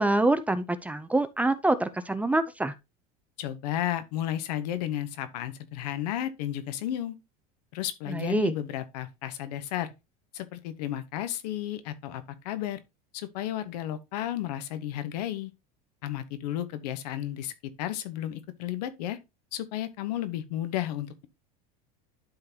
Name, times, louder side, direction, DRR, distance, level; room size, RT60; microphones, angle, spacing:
voice 1, 0.0-2.7 8.1-8.5, right 2 dB, 5° right, 0.5 m, -25 dB
voice 2, 3.4-7.2 7.7-9.9 10.3-12.8 13.1-15.5 16.0-17.5 17.8-19.2 19.5-21.3, left 12 dB, 85° left, 1.0 m, -33 dB
11.5 x 3.9 x 2.8 m
supercardioid pair, 135°, 20 cm